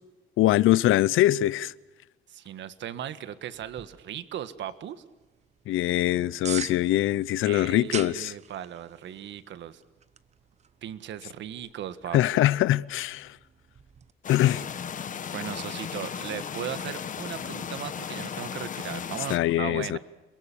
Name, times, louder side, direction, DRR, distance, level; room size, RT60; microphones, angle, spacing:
voice 1, 0.4-1.7 5.7-8.3 12.1-13.4 14.3-14.7 19.3-20.0, left 14 dB, 80° left, 0.7 m, -23 dB
voice 2, 2.3-5.0 7.4-9.8 10.8-12.2 15.3-20.0, right 10 dB, 65° right, 1.5 m, -37 dB
sound 1, 3.5-14.1, right 7 dB, 35° right, 0.9 m, -44 dB
sound 2, 14.2-19.4, left 7 dB, 40° left, 1.3 m, -36 dB
30.0 x 22.0 x 7.0 m
cardioid pair, 150°, 21 cm